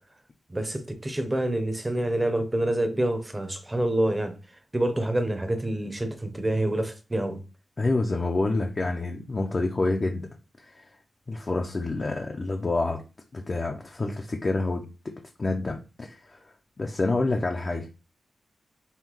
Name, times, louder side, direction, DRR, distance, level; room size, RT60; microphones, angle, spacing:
voice 1, 0.5-4.3 4.7-7.4, right 1 dB, 15° right, 0.7 m, -27 dB
voice 2, 7.8-10.3 10.6-10.9 11.3-13.0 13.3-14.8 15.4-16.4 16.8-17.9, left 2 dB, 35° left, 0.5 m, -27 dB
5.5 x 2.2 x 3.0 m
wide cardioid pair, 115°, 0 cm